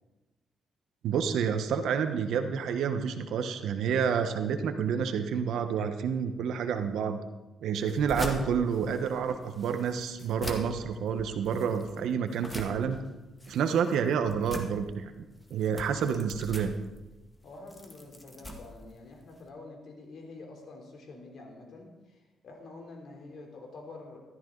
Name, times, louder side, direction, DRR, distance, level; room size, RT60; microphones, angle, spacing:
voice 1, 1.0-7.2 7.6-13.0 13.5-15.1 15.5-16.8, right 7 dB, 80° right, 8 dB, 1.2 m, -29 dB
sound 1, 7.7-19.5, left 1 dB, 15° left, 1.9 m, -43 dB
voice 2, 17.4-24.2, left 3 dB, 65° left, 1 dB, 3.6 m, -47 dB
14.5 x 13.0 x 4.0 m, 1.1 s
cardioid pair, 90°, 0 cm